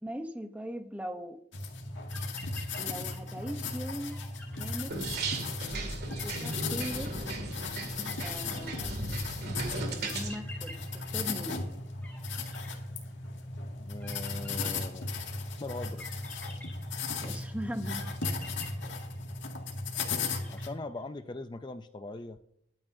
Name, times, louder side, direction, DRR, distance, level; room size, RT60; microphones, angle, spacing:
voice 1, 0.0-1.4 2.8-4.2 4.5-5.0 6.2-7.2 8.2-8.9 10.1-11.7 17.2-18.2, equal, 10° right, 0.8 m, -39 dB
sound 1, 1.5-20.7, left 3 dB, 90° left, 2.0 m, -36 dB
sound 2, 1.8-1.9 2.1-3.5 3.8-3.9 4.1-5.5 6.1-7.5 8.1-9.4 10.0-11.7 12.0-13.4 14.0-15.2 16.0-17.4 18.0-19.5 19.9-21.2, left 1 dB, 10° left, 4.3 m, -50 dB
sound 3, 4.9-10.4, right 2 dB, 55° right, 2.2 m, -36 dB
voice 2, 13.7-15.1 15.6-16.3 20.5-22.4, left 2 dB, 25° left, 0.4 m, -41 dB
22.5 x 9.0 x 2.6 m
head